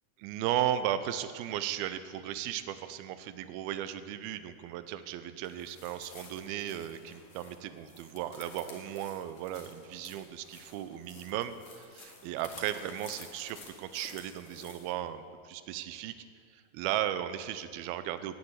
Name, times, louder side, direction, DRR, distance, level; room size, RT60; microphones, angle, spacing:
voice 1, 0.2-16.1 16.5-18.4, right 11 dB, 80° right, 11 dB, 2.4 m, -36 dB
sound 1, 5.4-14.9, left 4 dB, 55° left, 2.8 m, -52 dB
16.5 x 6.9 x 9.6 m, 2.2 s
omnidirectional pair, 4.7 m